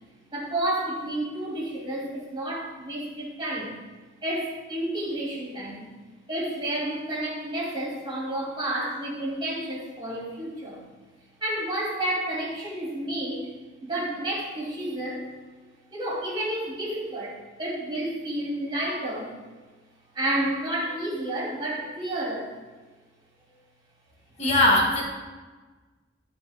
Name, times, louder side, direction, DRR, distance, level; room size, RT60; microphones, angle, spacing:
voice 1, 0.3-3.8 4.2-5.9 6.3-10.8 11.4-13.5 13.8-15.3 15.9-19.5 20.1-22.5, right 1 dB, 20° right, -4 dB, 2.5 m, -30 dB
voice 2, 24.4-25.0, left 1 dB, 35° left, -3 dB, 1.8 m, -20 dB
13.5 x 4.7 x 3.6 m, 1.3 s
head